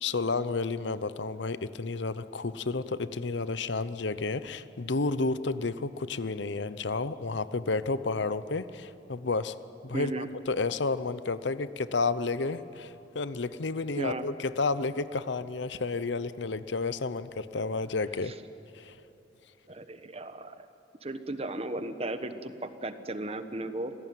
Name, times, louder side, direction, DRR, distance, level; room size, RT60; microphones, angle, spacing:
voice 1, 0.0-9.5 9.8-18.3 18.7-18.9, left 3 dB, 70° left, 14 dB, 0.8 m, -31 dB
voice 2, 9.9-10.3 14.0-14.3 18.2-18.3 19.7-20.6 21.0-23.9, right 2 dB, 30° right, 10 dB, 1.1 m, -35 dB
25.5 x 17.5 x 9.3 m, 3.0 s
head